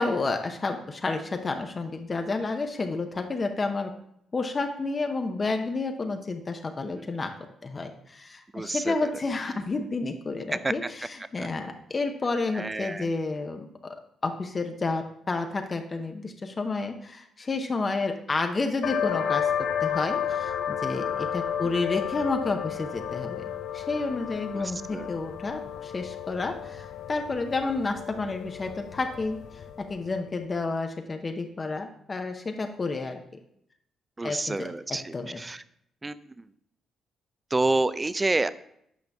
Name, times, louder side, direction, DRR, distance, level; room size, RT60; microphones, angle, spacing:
voice 1, 0.0-3.9 4.3-7.3 7.6-13.7 14.2-19.5 19.8-23.4 23.7-29.4 29.9-33.2 34.2-34.7 35.1-35.4, left 3 dB, 35° left, 5 dB, 0.7 m, -30 dB
voice 2, 8.5-9.1 10.6-10.7 11.4-11.5 12.6-13.1 24.6-24.7 24.9-25.1 34.2-35.6 36.0-36.2 37.5-38.5, right 2 dB, 20° right, 15 dB, 0.4 m, -28 dB
sound 1, 18.8-30.1, left 8 dB, 75° left, 0.5 m, -32 dB
8.4 x 5.1 x 3.4 m, 0.73 s
cardioid pair, 80°, 0 cm